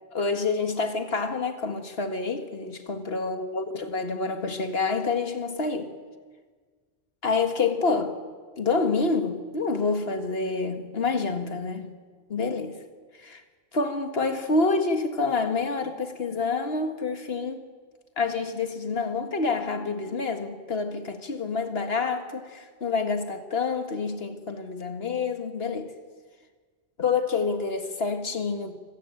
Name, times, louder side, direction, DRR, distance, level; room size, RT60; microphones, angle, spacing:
voice 1, 0.1-5.9 7.2-8.2 8.6-11.8 12.3-12.8 13.2-13.4 13.7-17.6 18.2-25.9 27.0-28.7, left 4 dB, 70° left, 2.1 m, -27 dB
25.5 x 15.0 x 9.0 m
omnidirectional pair, 1.1 m